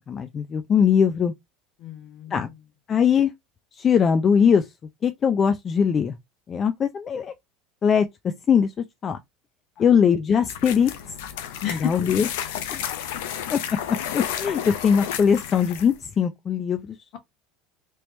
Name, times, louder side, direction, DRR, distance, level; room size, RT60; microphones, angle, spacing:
voice 1, 0.1-1.3 2.3-2.5 2.9-3.3 3.8-4.7 5.0-6.2 6.5-7.3 7.8-8.1 8.5-8.7 9.0-9.2 9.8-10.9 11.7-12.3 12.7-12.8 13.5-13.6 14.1-17.0, left 7 dB, 30° left, 0.4 m, -21 dB
voice 2, 1.8-2.5 11.6-11.9 14.6-14.7, left 9 dB, 55° left, 1.2 m, -31 dB
sound 1, 10.4-16.0, left 10 dB, 85° left, 0.6 m, -32 dB
3.1 x 3.0 x 3.1 m
supercardioid pair, 120°, 0 cm